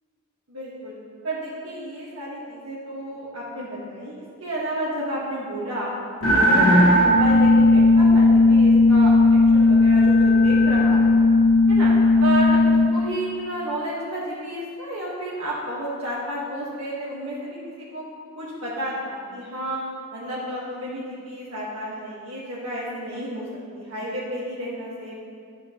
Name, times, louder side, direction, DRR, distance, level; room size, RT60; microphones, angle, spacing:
voice 1, 0.5-0.9 1.2-5.9 6.3-11.3 11.7-11.9 12.2-12.6 12.9-18.0 18.4-19.8 20.1-25.2, right 1 dB, 75° right, -7 dB, 1.5 m, -31 dB
sound 1, 6.2-12.9, left 2 dB, 75° left, 1.8 m, -16 dB
11.5 x 7.7 x 3.0 m, 2.3 s
head